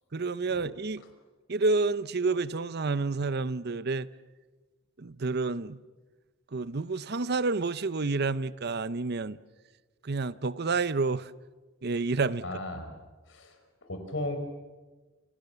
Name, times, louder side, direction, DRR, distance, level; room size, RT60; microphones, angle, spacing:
voice 1, 0.1-1.0 1.5-4.1 5.0-5.8 6.5-9.4 10.0-11.3 11.8-12.4, right 3 dB, 55° right, 0.8 m, -29 dB
voice 2, 12.4-12.9 13.3-14.4, left 1 dB, 65° left, 5.4 m, -36 dB
29.0 x 28.0 x 7.0 m
head